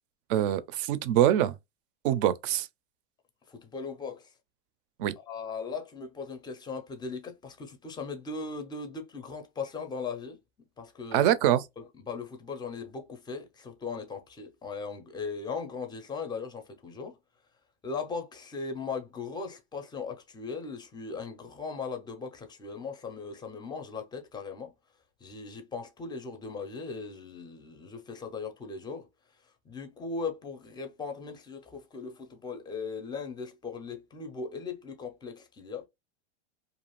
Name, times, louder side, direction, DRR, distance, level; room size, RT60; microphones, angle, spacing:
voice 1, 0.3-1.6 2.0-2.7 5.0-5.1 11.1-11.6, right 11 dB, 50° right, 0.5 m, -24 dB
voice 2, 3.5-4.2 5.2-10.4 10.8-11.3 11.8-17.2 17.8-24.7 25.2-29.1 29.7-35.9, left 4 dB, 15° left, 0.5 m, -38 dB
2.5 x 2.3 x 3.0 m
hypercardioid pair, 120°, 35 cm